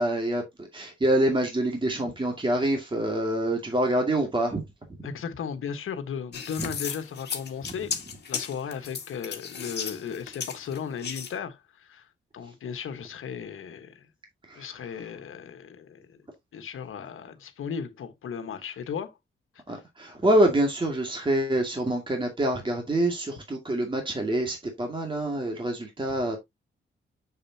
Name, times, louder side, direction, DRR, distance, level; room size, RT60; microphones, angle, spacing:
voice 1, 0.0-4.6 6.6-6.7 14.5-14.7 19.7-26.4, right 1 dB, 25° right, 2.3 m, -26 dB
voice 2, 5.0-7.9 8.3-12.1 12.3-14.1 14.6-16.2 16.5-19.1 19.7-19.8 26.1-26.2, left 7 dB, 80° left, 1.4 m, -36 dB
sound 1, 6.3-11.3, left 6 dB, 55° left, 1.8 m, -35 dB
6.9 x 6.8 x 2.8 m
cardioid pair, 105°, 21 cm